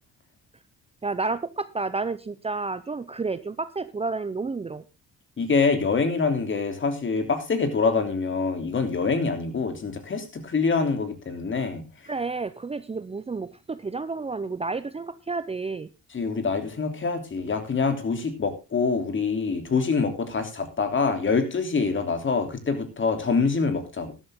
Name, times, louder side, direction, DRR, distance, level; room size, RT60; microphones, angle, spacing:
voice 1, 1.0-4.8 12.1-15.9, right 3 dB, 20° right, 14 dB, 0.7 m, -30 dB
voice 2, 5.4-11.8 16.1-24.1, left 4 dB, 40° left, 7 dB, 3.2 m, -25 dB
13.0 x 11.5 x 3.7 m, 0.27 s
cardioid pair, 90°, 30 cm